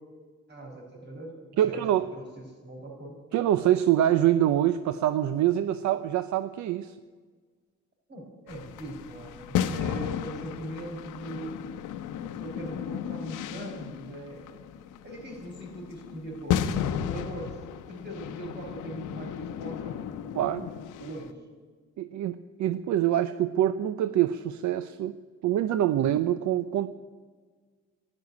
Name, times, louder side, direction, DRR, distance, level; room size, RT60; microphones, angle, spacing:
voice 1, 0.5-3.2 8.1-11.6 12.2-14.7 15.0-20.4 21.0-21.4, right 1 dB, 35° right, 1 dB, 5.2 m, -41 dB
voice 2, 1.6-2.1 3.3-6.9 20.4-20.7 21.0-21.1 22.0-25.1 25.4-26.9, right 12 dB, 70° right, 13 dB, 0.6 m, -25 dB
sound 1, 8.5-21.3, left 9 dB, 85° left, 0.8 m, -34 dB
12.0 x 11.0 x 9.5 m, 1.5 s
cardioid pair, 90°, 30 cm